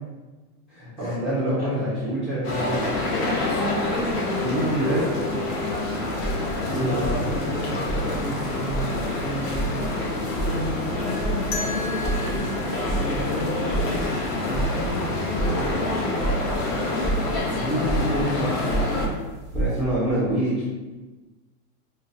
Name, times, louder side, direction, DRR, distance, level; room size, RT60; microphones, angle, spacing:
voice 1, 0.7-2.9 4.4-5.1 6.7-7.2 17.5-18.6 19.5-20.7, right 1 dB, ahead, -12 dB, 0.3 m, -26 dB
sound 1, 2.4-19.1, left 2 dB, 40° left, 0.8 m, -27 dB
voice 2, 2.7-4.5 6.6-9.9 10.4-16.7 18.2-19.2, equal, 60° left, -2 dB, 1.2 m, -33 dB
sound 2, 5.8-19.8, right 2 dB, 15° left, 1.3 m, -31 dB
sound 3, 11.5-14.4, left 3 dB, 80° left, 0.8 m, -37 dB
5.0 x 2.2 x 2.6 m, 1.2 s
supercardioid pair, 135°, 45 cm